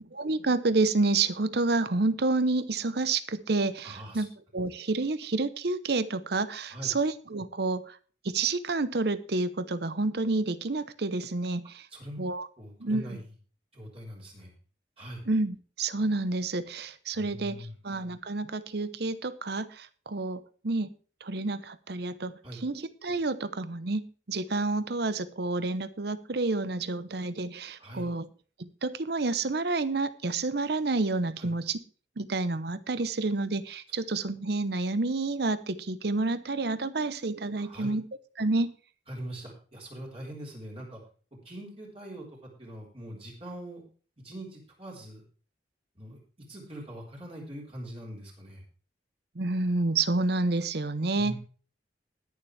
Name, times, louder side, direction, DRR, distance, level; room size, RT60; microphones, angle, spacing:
voice 1, 0.2-4.3 4.5-8.0 8.2-11.9 12.2-12.5 12.8-13.2 15.3-17.6 17.8-20.9 21.2-22.3 22.6-24.0 24.3-28.3 28.6-31.8 32.2-38.0 38.4-38.7 49.4-51.3, right 3 dB, 60° right, 14 dB, 0.8 m, -29 dB
voice 2, 3.8-4.2 6.7-6.9 11.9-12.2 12.6-13.2 13.7-14.5 15.0-15.2 17.1-17.8 22.4-22.6 27.8-28.1 31.4-31.5 37.6-37.9 39.1-41.0 41.4-42.3 42.6-43.8 44.2-45.2 46.0-46.2 46.5-48.6 51.2-51.4, right 1 dB, 30° right, -2 dB, 3.9 m, -42 dB
20.5 x 7.1 x 3.3 m, 0.40 s
head